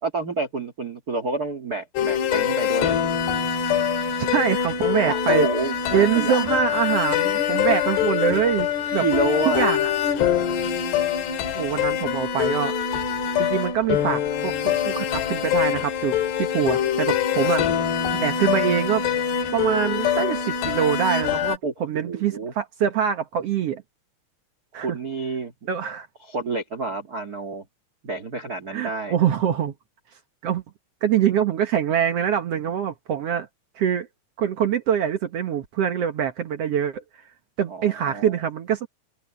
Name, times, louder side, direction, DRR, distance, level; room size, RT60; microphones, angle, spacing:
voice 1, 0.0-3.0 5.0-6.4 9.0-9.7 17.4-17.5 21.6-22.5 24.8-25.5 26.2-27.6 28.0-29.1 37.7-38.4, right 3 dB, 40° right, 1.3 m, -29 dB
sound 1, 2.0-21.6, left 8 dB, 90° left, 3.8 m, -24 dB
voice 2, 4.2-5.5 5.9-9.0 9.4-9.9 11.5-12.7 13.4-19.1 19.5-23.8 24.7-25.0 25.7-26.1 28.7-29.7 30.4-30.6 31.0-33.5 33.7-34.1 34.4-37.0 37.6-38.9, right 9 dB, 80° right, 1.4 m, -24 dB
open air
omnidirectional pair, 4.6 m